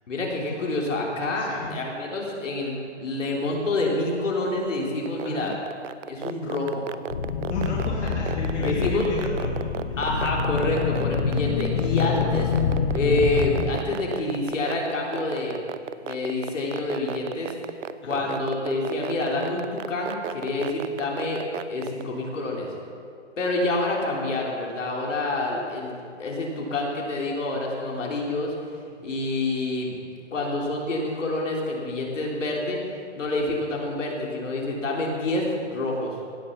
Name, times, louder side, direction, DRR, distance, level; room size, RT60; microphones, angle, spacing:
voice 1, 0.1-5.6 6.0-6.8 8.6-9.1 10.0-12.5 12.9-15.6 16.0-17.5 18.0-22.7 23.4-28.5 29.0-30.0 30.3-32.8 33.2-36.2, left 2 dB, 85° left, -2 dB, 3.5 m, -27 dB
voice 2, 1.4-1.8 5.2-5.5 7.5-9.7 11.3-11.4 18.0-18.3, left 2 dB, 65° left, -4 dB, 2.6 m, -34 dB
sound 1, 5.1-22.0, right 9 dB, 90° right, 0.7 m, -32 dB
sound 2, 7.1-13.8, left 5 dB, 25° left, 0.7 m, -26 dB
17.0 x 6.9 x 7.1 m, 2.4 s
hypercardioid pair, 170°, 37 cm